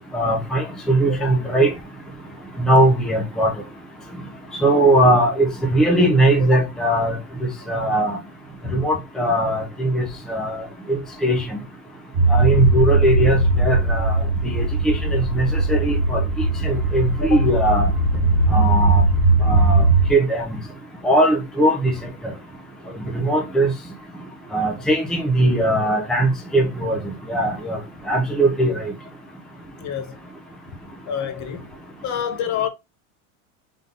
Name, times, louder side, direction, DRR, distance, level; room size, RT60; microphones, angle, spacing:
voice 1, 0.1-1.7 2.6-3.5 4.6-7.2 7.7-8.2 8.7-11.6 12.3-14.1 14.5-17.9 18.5-19.0 19.5-19.8 20.1-20.5 21.0-21.9 22.2-22.3 23.1-23.7 24.5-27.0 27.3-27.8 28.1-28.9, right 1 dB, ahead, 0.6 m, -20 dB
sound 1, 12.1-20.1, right 2 dB, 45° right, 1.4 m, -19 dB
voice 2, 31.1-31.6 32.0-32.7, left 8 dB, 45° left, 0.8 m, -27 dB
3.7 x 2.7 x 3.7 m
supercardioid pair, 130°, 41 cm